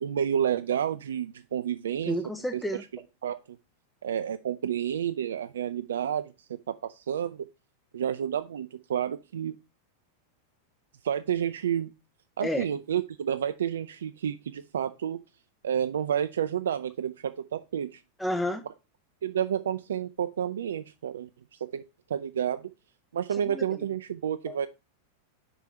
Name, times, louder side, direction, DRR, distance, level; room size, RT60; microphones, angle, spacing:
voice 1, 0.0-2.2 2.5-2.6 3.2-3.6 4.0-6.3 6.7-7.5 7.9-9.5 11.0-11.9 12.4-15.2 15.6-18.0 19.2-21.8 22.1-22.7 23.1-24.7, right 9 dB, 65° right, 0.3 m, -30 dB
voice 2, 2.1-2.8 12.4-12.7 18.2-18.6 23.3-23.6 24.5-24.6, left 1 dB, 5° left, 0.5 m, -31 dB
5.0 x 4.9 x 5.6 m
figure-of-eight pair, 90°, 0 cm